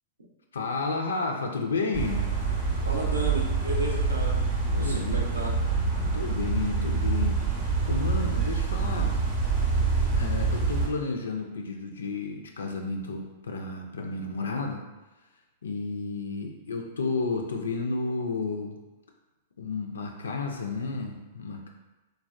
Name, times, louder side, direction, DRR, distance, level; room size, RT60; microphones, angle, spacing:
voice 1, 0.5-2.3 4.8-5.3 6.1-7.5 7.9-9.2 10.1-14.8 15.6-18.8 19.6-21.7, left 3 dB, 70° left, 2 dB, 0.3 m, -32 dB
sound 1, 1.9-10.9, right 4 dB, 35° right, 0.6 m, -26 dB
voice 2, 2.8-4.5 4.7-5.6, right 1 dB, 80° right, 0 dB, 0.5 m, -33 dB
3.3 x 2.2 x 2.4 m, 1.1 s
figure-of-eight pair, 100°, 0 cm